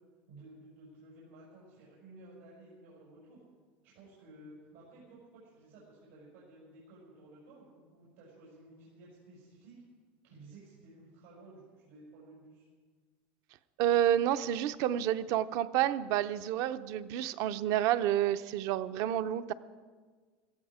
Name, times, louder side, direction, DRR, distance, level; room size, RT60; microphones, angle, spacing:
voice 1, 0.3-3.4 3.8-9.8 10.2-12.7, right 2 dB, 85° right, -6 dB, 5.7 m, -55 dB
voice 2, 13.8-19.5, right 11 dB, 55° right, 13 dB, 0.6 m, -29 dB
17.0 x 15.0 x 5.0 m, 1.5 s
supercardioid pair, 150°, 6 cm